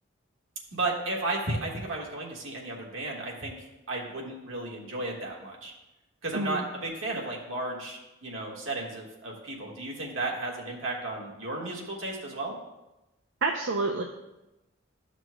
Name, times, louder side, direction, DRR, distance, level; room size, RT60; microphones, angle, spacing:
voice 1, 0.7-3.5 3.9-5.7 6.2-12.5, right 2 dB, 85° right, -1 dB, 1.6 m, -34 dB
voice 2, 6.3-6.6 13.4-14.0, right 3 dB, 65° right, 2 dB, 0.6 m, -28 dB
12.5 x 6.0 x 2.3 m, 0.97 s
head